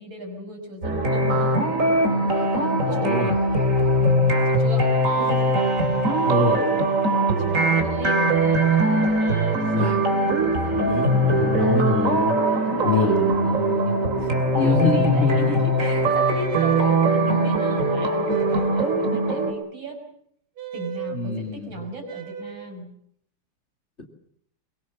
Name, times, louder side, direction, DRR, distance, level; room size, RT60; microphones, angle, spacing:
voice 1, 0.0-1.6 2.3-3.5 4.0-5.6 7.4-8.4 9.2-9.6 10.6-11.7 12.6-20.0 20.7-22.9, right 1 dB, 60° right, 3 dB, 6.4 m, -37 dB
sound 1, 0.8-19.5, right 1 dB, 35° right, 3.3 m, -21 dB
voice 2, 2.8-3.3 6.2-6.7 9.5-10.0 10.7-12.4 12.8-13.9 14.6-15.7 21.1-21.8, left 2 dB, 30° left, 3 dB, 2.9 m, -25 dB
sound 2, 16.1-17.0 18.3-18.9 20.6-21.2 22.0-22.7, right 8 dB, 85° right, 2.9 m, -36 dB
23.0 x 23.0 x 7.4 m, 0.67 s
omnidirectional pair, 2.4 m